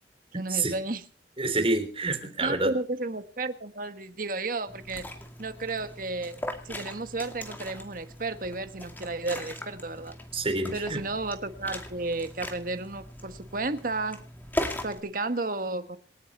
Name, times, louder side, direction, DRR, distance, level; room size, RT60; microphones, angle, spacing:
voice 1, 0.3-1.0 2.4-5.1 5.4-6.4 6.6-10.2 10.7-14.2 14.8-16.0, right 2 dB, 50° right, 10 dB, 1.4 m, -33 dB
voice 2, 1.4-2.7 10.3-11.0, right 2 dB, 30° right, 7 dB, 3.4 m, -27 dB
Liquid, 4.7-15.0, left 1 dB, 10° left, 2.4 m, -39 dB
27.5 x 9.4 x 4.3 m, 0.41 s
head